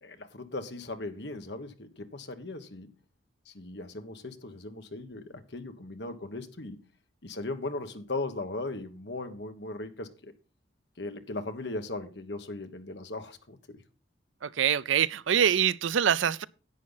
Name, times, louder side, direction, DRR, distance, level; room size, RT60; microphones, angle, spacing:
voice 1, 0.0-2.9 3.5-6.8 7.2-10.3 11.0-13.8, left 2 dB, 60° left, 1.3 m, -38 dB
voice 2, 14.4-16.4, right 8 dB, 80° right, 0.5 m, -25 dB
11.0 x 8.5 x 4.0 m
head